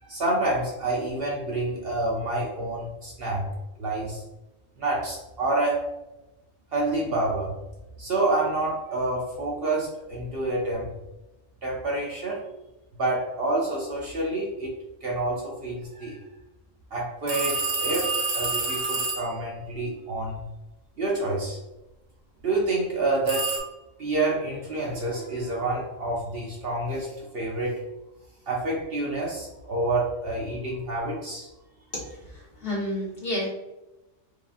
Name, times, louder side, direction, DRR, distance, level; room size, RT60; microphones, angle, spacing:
voice 1, 0.0-4.2 4.8-5.9 6.7-7.6 8.0-10.9 11.6-12.4 13.0-14.7 15.0-16.2 16.9-20.4 21.0-21.6 22.4-23.5 24.0-27.8 28.5-31.5, right 2 dB, 55° right, -2 dB, 0.9 m, -28 dB
sound 1, 17.3-19.4 23.3-23.6, right 4 dB, 70° right, 1.1 m, -28 dB
voice 2, 32.3-33.5, left 1 dB, 45° left, -6 dB, 1.6 m, -30 dB
4.7 x 2.8 x 2.5 m, 0.98 s
omnidirectional pair, 1.3 m